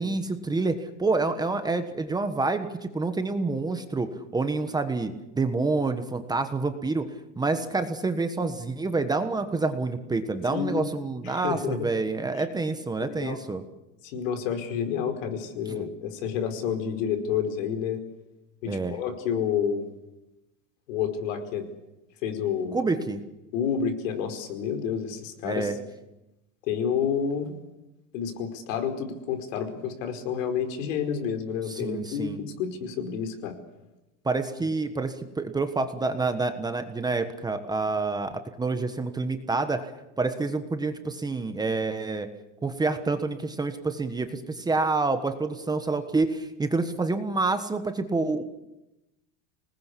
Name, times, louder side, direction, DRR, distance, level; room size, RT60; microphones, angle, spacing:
voice 1, 0.0-7.1 7.4-13.6 15.7-15.9 18.7-19.0 22.7-23.2 25.4-25.8 31.7-32.4 34.2-39.8 40.2-42.3 42.6-48.4, right 3 dB, 10° right, 8 dB, 1.3 m, -28 dB
voice 2, 10.5-10.9 11.3-11.9 13.0-13.4 14.0-18.0 18.6-19.9 20.9-21.7 22.2-22.8 23.5-25.7 26.7-27.5 28.1-33.5, left 7 dB, 80° left, 6 dB, 5.0 m, -29 dB
26.5 x 20.0 x 8.5 m, 0.97 s
supercardioid pair, 150°, 38 cm